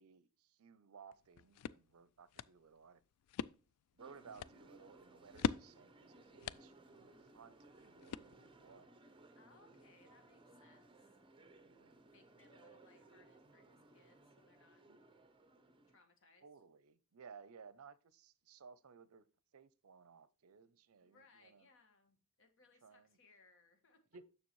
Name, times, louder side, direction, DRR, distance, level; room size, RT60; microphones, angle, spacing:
voice 1, 0.0-3.0 3.9-9.0 11.6-12.1 14.9-15.0 16.4-19.3 19.5-21.7 22.8-23.2 24.1-24.3, right 5 dB, 70° right, 0.5 m, -59 dB
sound 1, 1.1-8.7, left 7 dB, 90° left, 0.3 m, -45 dB
sound 2, 4.0-16.0, right 2 dB, 25° right, 0.8 m, -62 dB
voice 2, 9.3-11.1 12.0-14.8 15.9-16.5 21.0-24.0, left 3 dB, 60° left, 1.6 m, -68 dB
7.0 x 6.8 x 3.1 m
head